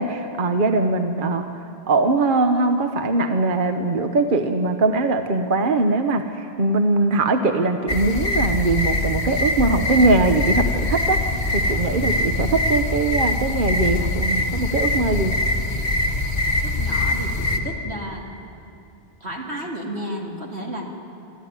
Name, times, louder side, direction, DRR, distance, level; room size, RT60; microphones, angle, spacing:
voice 1, 0.0-1.5 1.9-15.4, right 2 dB, 55° right, 7 dB, 1.1 m, -21 dB
sound 1, 7.9-17.6, left 1 dB, 45° left, 1.9 m, -23 dB
voice 2, 16.6-18.2 19.2-20.8, right 1 dB, 85° right, 0 dB, 3.0 m, -32 dB
25.0 x 14.0 x 9.6 m, 2.6 s
omnidirectional pair, 1.1 m